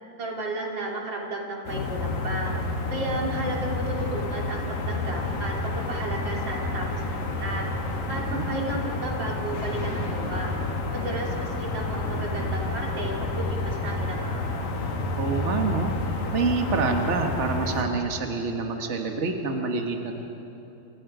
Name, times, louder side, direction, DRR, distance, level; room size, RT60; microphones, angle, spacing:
voice 1, 0.2-2.5 2.9-7.7 8.1-10.5 10.9-14.7, right 2 dB, 35° right, -2 dB, 3.5 m, -33 dB
sound 1, 1.7-17.8, left 2 dB, 75° left, 3.9 m, -29 dB
voice 2, 8.1-8.5 15.2-15.9 16.3-20.2, right 4 dB, 70° right, 3 dB, 0.6 m, -27 dB
28.0 x 27.5 x 5.0 m, 2.9 s
omnidirectional pair, 4.0 m